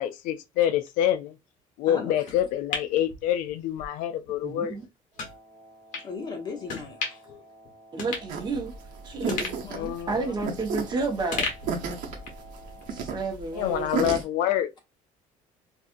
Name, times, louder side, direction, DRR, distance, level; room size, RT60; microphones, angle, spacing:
voice 1, 0.0-1.4 1.8-4.8 7.3-7.4 9.7-10.3 13.5-14.8, left 11 dB, 85° left, 0.4 m, -27 dB
sound 1, 2.3-3.9 4.3-4.4 5.2-5.3 5.9-6.1 6.7-7.3 7.6-7.7 8.0-8.9 9.3-10.9 11.3-12.5 12.8-12.9, left 4 dB, 70° left, 1.1 m, -35 dB
voice 2, 4.4-4.8 7.9-8.7 9.0-9.4 10.1-11.5 12.9-14.1, right 3 dB, 35° right, 1.0 m, -31 dB
Wind instrument woodwind instrument, 5.1-13.4, right 1 dB, 55° right, 1.0 m, -52 dB
voice 3, 6.0-7.3 9.2-10.0, left 5 dB, 30° left, 1.1 m, -37 dB
sound 2, 8.3-14.2, right 5 dB, 75° right, 0.8 m, -33 dB
2.7 x 2.5 x 2.5 m
cardioid pair, 130°, 14 cm